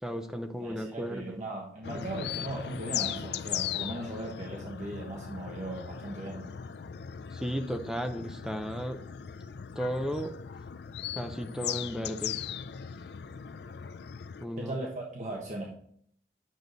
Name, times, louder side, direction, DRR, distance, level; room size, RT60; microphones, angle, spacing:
voice 1, 0.0-1.4 7.3-9.0 9.8-10.3 11.1-12.4 14.4-14.7, equal, 5° right, 5 dB, 0.6 m, -34 dB
voice 2, 0.6-6.5 14.6-15.8, right 1 dB, 45° right, -1 dB, 1.3 m, -38 dB
sound 1, 1.8-14.5, left 9 dB, 70° left, 0.4 m, -38 dB
9.2 x 6.7 x 4.0 m, 0.64 s
head